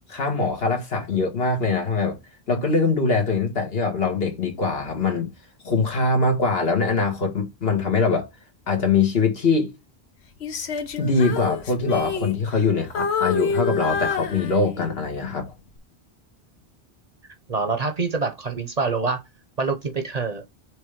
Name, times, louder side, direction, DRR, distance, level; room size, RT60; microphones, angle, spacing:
voice 1, 0.1-2.2 2.5-5.3 5.6-8.3 8.7-9.7 11.0-15.5, left 4 dB, 70° left, 1.9 m, -23 dB
Female singing, 10.4-12.7 12.9-15.0 15.5-15.8, left 5 dB, 85° left, 1.2 m, -27 dB
voice 2, 17.5-19.2 19.6-20.4, right 4 dB, 45° right, 0.8 m, -25 dB
6.5 x 3.4 x 5.0 m
omnidirectional pair, 1.1 m